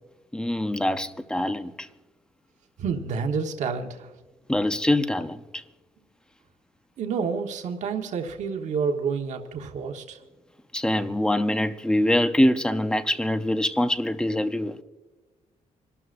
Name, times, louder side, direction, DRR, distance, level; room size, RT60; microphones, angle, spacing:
voice 1, 0.3-1.9 4.5-5.6 10.7-14.8, left 1 dB, 5° left, 0.6 m, -24 dB
voice 2, 2.8-4.1 7.0-10.2, right 5 dB, 70° right, 1.2 m, -29 dB
27.0 x 12.5 x 2.5 m
cardioid pair, 140°, 13 cm